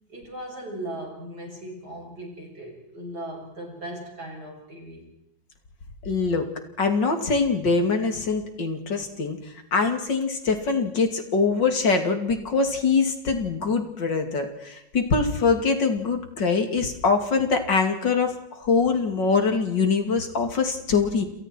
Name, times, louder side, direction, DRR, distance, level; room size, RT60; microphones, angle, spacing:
voice 1, 0.1-5.1, right 1 dB, 60° right, 0 dB, 7.5 m, -38 dB
voice 2, 6.0-6.5 6.8-9.4 9.7-21.3, left 4 dB, 80° left, 5 dB, 3.4 m, -23 dB
29.0 x 29.0 x 4.6 m, 0.81 s
omnidirectional pair, 1.9 m